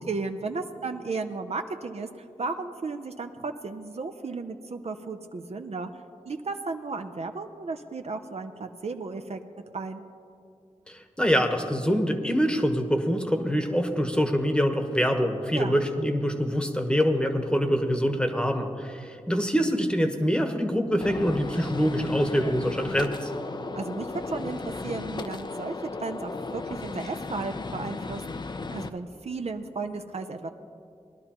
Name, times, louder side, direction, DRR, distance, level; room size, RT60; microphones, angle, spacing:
voice 1, 0.0-5.9 6.3-9.4 9.7-10.0 15.5-15.8 23.8-28.2 28.7-30.5, right 3 dB, 55° right, 6 dB, 0.6 m, -34 dB
voice 2, 10.9-23.3, equal, 5° left, 5 dB, 1.1 m, -25 dB
Gunshot gunfire, 21.0-28.9, left 3 dB, 35° left, 0.5 m, -35 dB
20.0 x 11.5 x 2.9 m, 2.5 s
wide cardioid pair, 75°, 12 cm